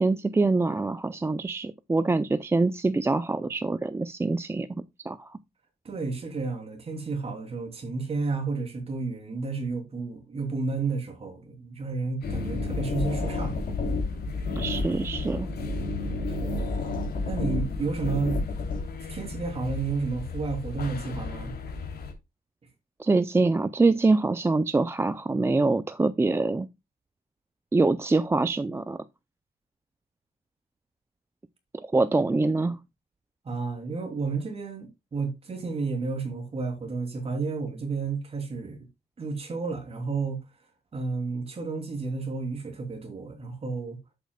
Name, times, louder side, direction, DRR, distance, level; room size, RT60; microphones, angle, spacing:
voice 1, 0.0-4.7 5.1-5.3 14.6-15.5 23.0-26.7 27.7-29.0 31.9-32.8, right 3 dB, 15° right, 0.5 m, -24 dB
voice 2, 5.8-13.6 16.3-16.8 17.2-18.4 19.0-21.5 33.4-38.9 39.2-40.4 40.9-44.0, right 4 dB, 35° right, 3.1 m, -31 dB
sound 1, 12.2-22.1, left 4 dB, 80° left, 3.0 m, -36 dB
sound 2, 12.2-18.8, left 2 dB, 55° left, 3.6 m, -31 dB
10.5 x 8.2 x 2.3 m
wide cardioid pair, 160°, 16 cm